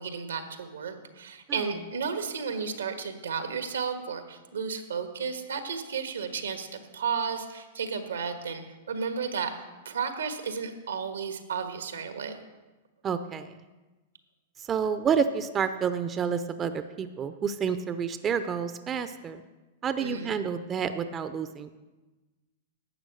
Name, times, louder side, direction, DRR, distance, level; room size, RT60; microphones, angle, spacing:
voice 1, 0.0-9.5 9.8-12.4 20.0-20.4, right 6 dB, 85° right, 7 dB, 1.5 m, -33 dB
voice 2, 13.0-13.5 14.6-19.4 19.8-21.8, right 7 dB, 25° right, 10 dB, 0.6 m, -29 dB
12.0 x 8.0 x 6.4 m, 1.2 s
hypercardioid pair, 110°, 0 cm